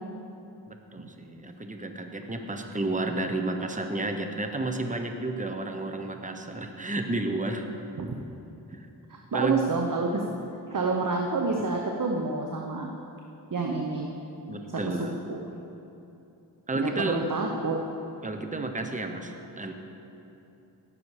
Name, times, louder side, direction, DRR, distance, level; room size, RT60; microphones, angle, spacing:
voice 1, 0.7-7.7 8.7-8.9 9.3-9.6 14.5-15.2 16.7-17.5 18.2-19.7, right 2 dB, 20° right, 5 dB, 1.1 m, -31 dB
voice 2, 9.3-10.2 10.7-12.9 13.5-14.1 14.8-15.4 16.7-17.8, right 3 dB, 50° right, 1 dB, 1.1 m, -28 dB
17.5 x 7.0 x 5.0 m, 3.0 s
cardioid pair, 45°, 42 cm